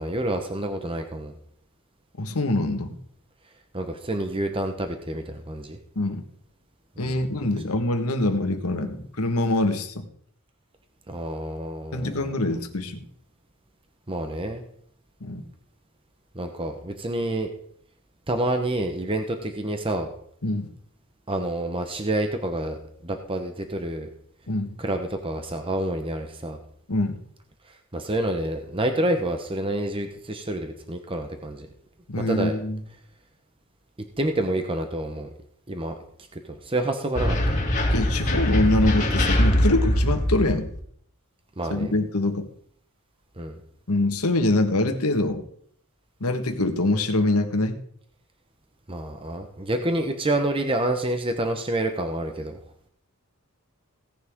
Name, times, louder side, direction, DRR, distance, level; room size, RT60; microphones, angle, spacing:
voice 1, 0.0-1.3 3.7-5.8 7.0-7.2 11.1-12.3 14.1-14.6 16.3-17.5 18.3-20.1 21.3-24.1 24.8-26.6 27.7-31.7 32.3-32.5 34.2-35.3 35.7-35.9 36.3-37.5 41.6-41.9 43.4-43.6 48.9-52.6, right 1 dB, 25° right, 5 dB, 1.0 m, -28 dB
voice 2, 2.2-3.0 5.9-6.2 7.0-10.1 11.9-13.0 15.2-15.5 20.4-20.7 24.5-24.7 26.9-27.2 32.1-32.8 37.9-40.7 41.7-42.5 43.9-45.4 46.2-47.8, left 2 dB, 80° left, 6 dB, 1.6 m, -24 dB
sound 1, 37.1-40.8, left 1 dB, 35° left, 2.4 m, -22 dB
17.0 x 10.0 x 3.7 m, 0.63 s
head